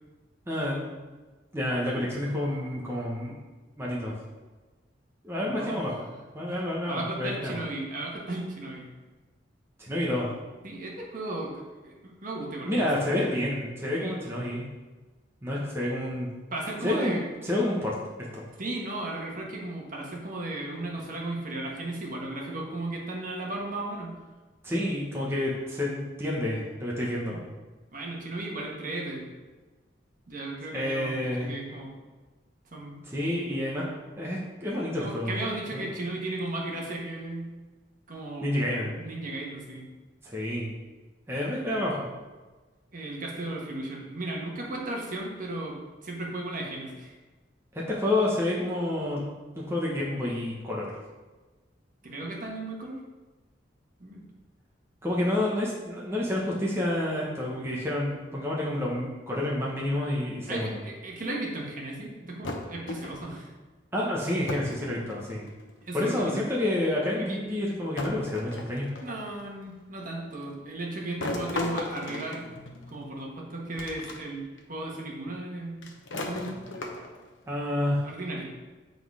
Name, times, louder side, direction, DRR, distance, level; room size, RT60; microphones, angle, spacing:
voice 1, 0.5-0.9 1.5-3.4 3.8-4.1 5.2-7.6 9.8-10.3 12.6-14.7 15.4-16.3 16.8-17.1 17.4-17.9 18.3-18.5 24.6-27.4 30.7-31.5 33.1-33.8 34.2-35.3 35.7-35.8 38.4-38.9 40.2-40.7 41.3-42.1 47.7-49.2 49.6-50.9 55.0-60.8 63.9-65.5 65.9-68.9 77.5-78.0, left 1 dB, 15° right, -5 dB, 1.0 m, -29 dB
voice 2, 5.4-5.8 6.5-6.6 6.9-8.8 10.6-12.9 13.9-14.2 16.5-17.2 18.6-24.2 27.3-27.4 27.9-29.2 30.3-31.9 32.7-33.0 35.0-37.5 38.1-38.5 39.0-39.9 42.9-47.1 52.0-53.0 54.0-54.2 60.5-63.5 65.8-66.4 67.2-67.4 69.0-72.5 72.9-74.4 74.7-76.6 78.0-78.5, right 2 dB, 45° right, -2 dB, 1.4 m, -35 dB
sound 1, 62.4-63.4 64.5-64.8 65.1-65.7 66.8-66.9 68.0-69.3 71.2-73.1 73.8-74.2 74.6-74.7 75.8-77.3, left 2 dB, 85° left, 0.9 m, -35 dB
7.6 x 4.0 x 4.8 m, 1.3 s
head